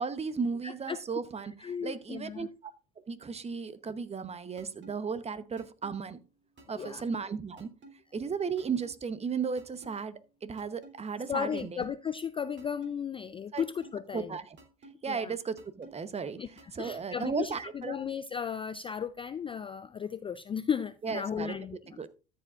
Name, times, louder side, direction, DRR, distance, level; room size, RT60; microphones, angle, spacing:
voice 1, 0.0-1.5 1.8-2.5 3.1-6.2 6.7-7.7 8.1-11.6 13.5-13.6 14.1-14.6 15.0-16.4 16.7-18.0 21.0-21.6 22.0-22.1, right 5 dB, 20° right, 0.9 m, -35 dB
voice 2, 0.6-1.0 1.4-2.5 6.7-7.0 11.3-14.4 15.1-15.4 16.4-22.1, left 7 dB, 20° left, 0.4 m, -35 dB
sound 1, 4.6-4.9 5.6-5.9 6.6-6.9 7.6-7.9 8.6-8.9 9.6-9.9 10.6-10.9 11.6-11.9 12.6-12.9 13.6-13.9 14.6-14.9 15.6-15.9 16.6-16.9 17.6-17.9, right 2 dB, 40° right, 3.0 m, -51 dB
13.5 x 7.6 x 2.4 m
hypercardioid pair, 85°, 30 cm